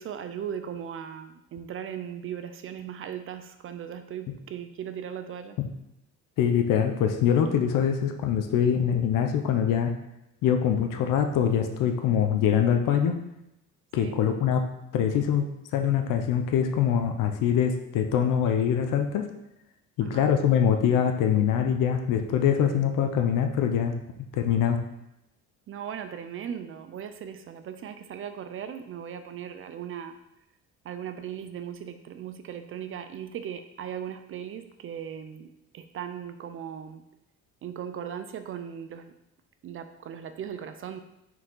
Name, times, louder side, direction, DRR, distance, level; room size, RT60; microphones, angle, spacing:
voice 1, 0.0-5.6 14.0-14.2 20.0-20.3 25.7-30.2 30.8-37.0 37.6-39.1 39.6-41.0, right 9 dB, 45° right, 9 dB, 0.4 m, -38 dB
voice 2, 6.4-9.9 10.4-13.1 13.9-14.6 14.9-15.4 15.7-19.3 20.0-23.9 24.3-24.8, left 8 dB, 85° left, 6 dB, 0.7 m, -24 dB
6.2 x 4.7 x 3.8 m, 0.86 s
cardioid pair, 160°, 31 cm